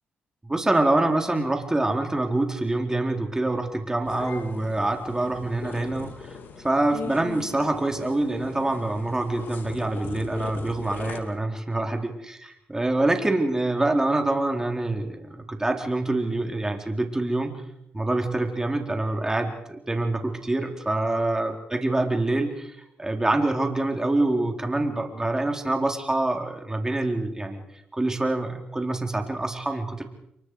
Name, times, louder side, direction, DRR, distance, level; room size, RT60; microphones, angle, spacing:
voice 1, 0.4-6.3 6.6-17.6 17.9-22.7 23.0-27.6 27.9-30.0, right 2 dB, 15° right, 3 dB, 4.0 m, -25 dB
sound 1, 4.0-11.2, left 6 dB, 70° left, 2.6 m, -40 dB
28.5 x 23.5 x 4.9 m, 0.79 s
cardioid pair, 70°, 4 cm